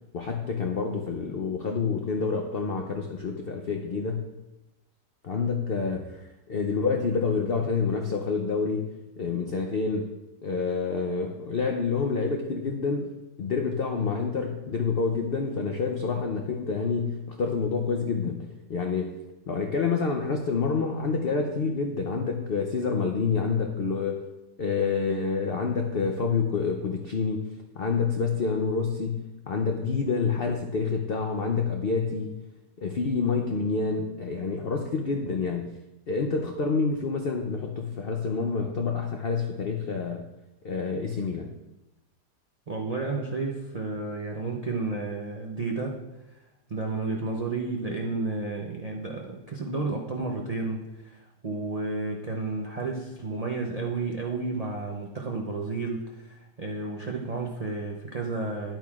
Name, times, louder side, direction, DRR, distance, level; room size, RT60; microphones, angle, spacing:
voice 1, 0.1-4.3 5.2-10.1 10.4-19.1 19.5-24.2 24.6-32.4 32.8-35.7 36.1-40.3 40.6-41.5, left 5 dB, 90° left, 3 dB, 0.5 m, -28 dB
voice 2, 42.7-46.0 46.7-58.8, right 3 dB, 85° right, 0 dB, 0.3 m, -32 dB
10.5 x 9.0 x 2.4 m, 0.99 s
omnidirectional pair, 1.8 m